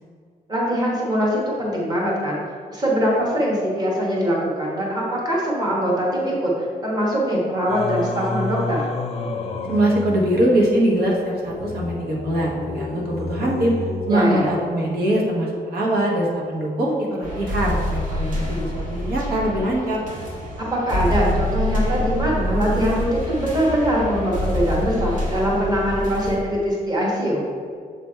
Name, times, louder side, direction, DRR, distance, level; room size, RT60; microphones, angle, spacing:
voice 1, 0.5-2.4 2.7-8.8 14.1-14.5 20.6-27.4, equal, 25° right, -4 dB, 1.3 m, -22 dB
Singing, 7.7-15.0, left 4 dB, 40° left, 0.5 m, -30 dB
voice 2, 9.7-13.7 14.1-20.0, right 1 dB, 85° right, -2 dB, 1.3 m, -22 dB
sound 1, 17.2-26.3, left 1 dB, 55° right, 1.2 m, -26 dB
6.9 x 3.4 x 4.4 m, 2.2 s
wide cardioid pair, 170°, 16 cm